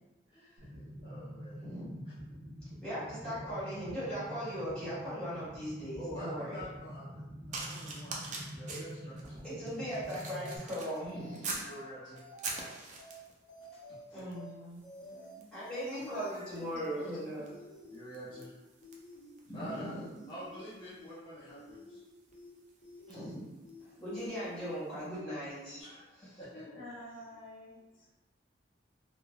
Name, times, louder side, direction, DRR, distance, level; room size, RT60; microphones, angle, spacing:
voice 1, 0.3-0.7 1.0-1.6 3.4-3.5 6.0-7.2 7.5-9.4 11.6-12.2 14.1-14.2 17.9-18.5 19.5-19.9 20.3-22.0 25.8-26.6, equal, 25° left, -12 dB, 0.5 m, -47 dB
sound 1, 0.6-10.6, equal, 60° right, 0.9 m, -46 dB
voice 2, 1.6-2.1 2.8-6.6 9.4-11.6 14.1-14.8 15.5-17.5 19.4-20.1 23.1-23.6 24.0-25.8, equal, 5° left, -12 dB, 1.2 m, -39 dB
sound 2, 7.5-11.7 12.2-13.4 14.2-14.4 14.7-24.4 25.1-25.3, right 3 dB, 40° right, 0.4 m, -46 dB
sound 3, 9.8-10.0 10.3-10.5 10.8-11.3 11.7-11.8 12.2-12.7 13.0-13.2 13.5-14.0 14.3-14.5 14.8-15.3 15.7-15.8 16.2-16.7 17.0-17.2 17.5-18.0 18.3-18.5 18.8-19.3 19.7-19.8 20.2-20.7 21.0-21.2 21.5-22.0 22.3-22.5 22.8-23.3 23.7-23.8 24.2-24.7 25.0-25.2 25.5-25.8, left 1 dB, 55° left, 1.0 m, -52 dB
voice 3, 15.0-15.4 15.8-17.5 23.8-24.1 26.5-28.1, left 1 dB, 90° left, -7 dB, 0.9 m, -50 dB
3.1 x 2.1 x 2.2 m, 1.1 s
head